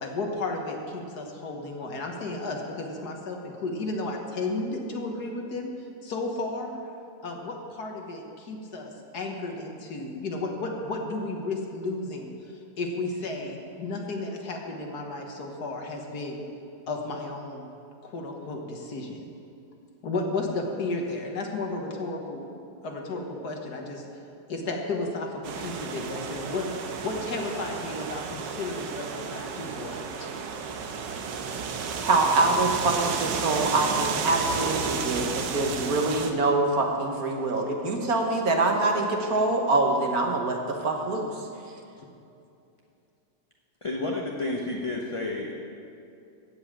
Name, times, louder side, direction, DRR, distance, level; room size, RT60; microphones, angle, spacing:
voice 1, 0.0-5.7 6.0-6.8 7.2-12.3 12.8-16.4 16.9-17.7 18.0-19.2 20.0-22.5 22.8-24.0 24.5-26.7 27.0-30.3, left 2 dB, 65° left, 1 dB, 1.8 m, -33 dB
sound 1, 25.4-36.3, right 5 dB, 85° right, 1.6 m, -32 dB
voice 2, 32.0-41.3, right 2 dB, 55° right, 2 dB, 1.6 m, -25 dB
voice 3, 43.8-45.5, left 2 dB, 30° left, -1 dB, 0.6 m, -30 dB
15.0 x 5.6 x 8.6 m, 2.6 s
omnidirectional pair, 1.9 m